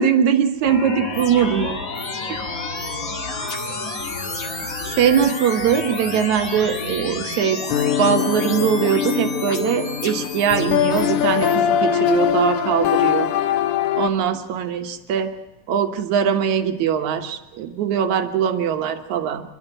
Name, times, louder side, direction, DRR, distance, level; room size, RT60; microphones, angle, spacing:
voice 1, 0.0-1.8 2.3-2.4 4.8-7.6 8.0-13.3 14.0-15.3 15.7-19.4, right 8 dB, 65° right, 7 dB, 2.4 m, -21 dB
sound 1, 0.6-11.5, left 3 dB, 30° left, 1.8 m, -30 dB
sound 2, 7.7-14.1, left 9 dB, 70° left, 2.1 m, -21 dB
28.0 x 12.0 x 9.0 m, 1.0 s
omnidirectional pair, 3.9 m